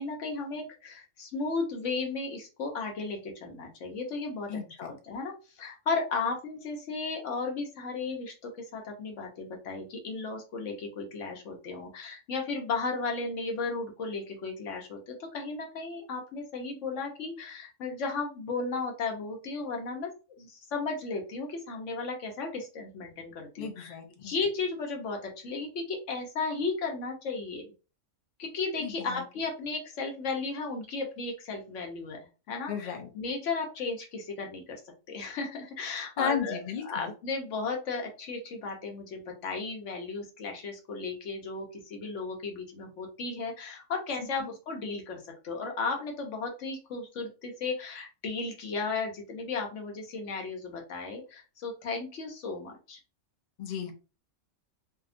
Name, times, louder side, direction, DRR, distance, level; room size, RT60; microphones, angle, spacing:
voice 1, 0.0-20.1 20.4-27.7 28.4-32.2 32.5-34.8 35.1-53.0, left 4 dB, 70° left, 2 dB, 1.1 m, -35 dB
voice 2, 4.5-4.9 23.6-24.3 28.8-29.2 32.7-33.1 36.2-37.1 44.4-44.5 53.6-53.9, left 7 dB, 55° left, 4 dB, 0.5 m, -34 dB
2.8 x 2.2 x 2.5 m, 0.32 s
omnidirectional pair, 1.3 m